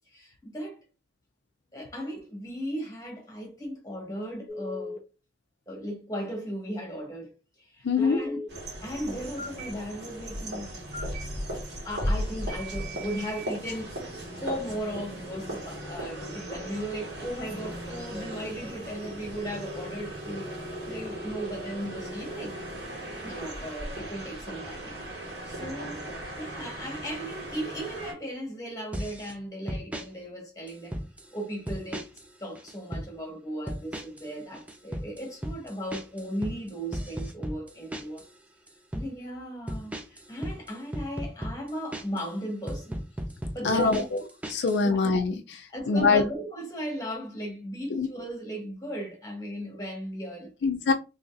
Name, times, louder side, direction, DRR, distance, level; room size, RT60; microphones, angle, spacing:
voice 1, 0.1-0.8 1.7-5.0 5.7-8.5 8.8-10.8 11.1-11.2 11.8-14.0 14.3-22.6 23.2-24.9 25.5-31.0 31.3-32.1 32.4-38.3 38.9-43.0 43.5-44.0 44.8-45.0 45.7-50.7, equal, 20° left, 1.5 m, -36 dB
Telephone, 4.5-5.0 8.0-8.5 9.4-9.7 10.9-11.2 12.5-13.5, left 1 dB, 40° right, 0.9 m, -38 dB
voice 2, 7.8-8.2 43.6-44.2 44.5-46.2 47.9-48.1 50.6-50.9, left 4 dB, 80° left, 0.4 m, -24 dB
sound 1, 8.5-28.1, equal, 80° right, 1.7 m, -37 dB
sound 2, 28.9-29.3 29.7-30.1 30.7-31.3 31.7-32.3 32.6-33.1 33.7-34.3 34.5-38.3 38.7-39.1 39.7-42.3 42.7-44.8, equal, 10° right, 0.4 m, -36 dB
3.9 x 3.2 x 2.5 m
head